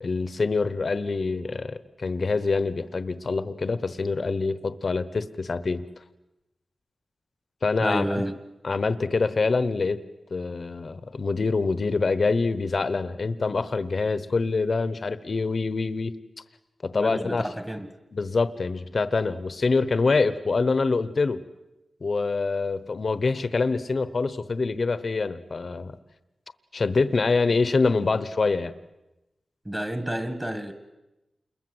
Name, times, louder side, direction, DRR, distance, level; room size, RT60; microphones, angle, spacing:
voice 1, 0.0-5.8 7.6-8.1 8.6-10.0 10.3-16.1 16.8-17.5 18.1-21.4 22.0-25.9 26.7-28.7, left 4 dB, 45° left, 13 dB, 1.0 m, -25 dB
voice 2, 7.8-8.3 16.9-17.9 29.6-30.7, right 1 dB, 15° right, 9 dB, 1.7 m, -30 dB
29.0 x 21.5 x 8.0 m, 0.97 s
wide cardioid pair, 155°, 0 cm